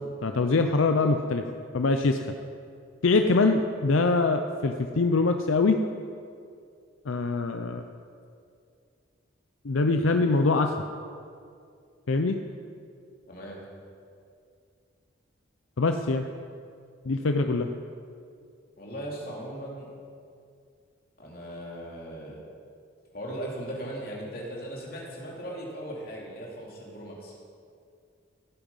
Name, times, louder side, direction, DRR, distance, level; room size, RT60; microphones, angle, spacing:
voice 1, 0.2-1.4 1.7-2.3 3.0-5.8 7.1-7.8 9.6-10.7 12.1-12.4 15.8-16.3 17.0-17.7, left 3 dB, 80° left, 6 dB, 0.6 m, -23 dB
voice 2, 13.3-13.6 18.8-19.9 21.2-22.4 23.1-27.3, right 1 dB, 50° left, -3 dB, 3.0 m, -38 dB
16.0 x 9.0 x 5.5 m, 2.3 s
head